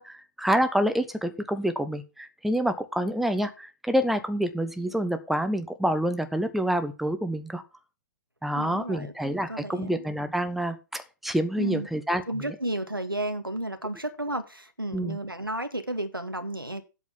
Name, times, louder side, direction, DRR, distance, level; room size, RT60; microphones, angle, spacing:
voice 1, 0.0-7.6 8.4-12.2 14.9-15.2, equal, ahead, 1.0 m, -27 dB
voice 2, 8.5-9.1 9.5-10.0 11.6-11.9 12.3-16.8, right 1 dB, 90° right, 1.9 m, -32 dB
8.3 x 6.5 x 7.3 m
figure-of-eight pair, 120°, 11 cm